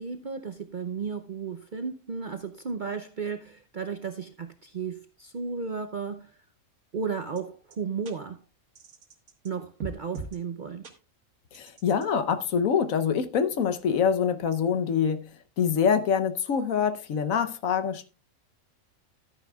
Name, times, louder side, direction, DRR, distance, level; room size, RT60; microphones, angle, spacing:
voice 1, 0.0-6.3 6.9-8.4 9.4-10.8, right 5 dB, 50° right, 0.6 m, -34 dB
sound 1, 7.4-7.5 7.7-7.8 8.0-8.1 8.7-9.5 9.8-10.4 10.8-10.9 11.5-12.1, right 3 dB, 75° right, 1.9 m, -40 dB
voice 2, 11.5-15.3 15.6-18.1, left 7 dB, 70° left, 1.2 m, -25 dB
13.0 x 9.5 x 2.3 m
omnidirectional pair, 1.5 m